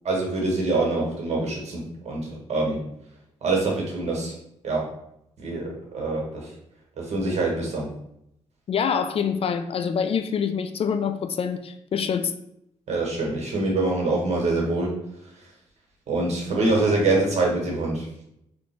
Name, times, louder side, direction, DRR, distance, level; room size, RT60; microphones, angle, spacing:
voice 1, 0.0-2.8 3.4-4.3 4.6-4.8 5.4-6.5 7.0-7.9 12.9-14.9 16.1-18.1, right 2 dB, 60° right, -1 dB, 1.4 m, -25 dB
voice 2, 8.7-12.3, left 7 dB, 50° left, 9 dB, 0.3 m, -25 dB
3.0 x 2.5 x 4.4 m, 0.77 s
supercardioid pair, 50°, 13 cm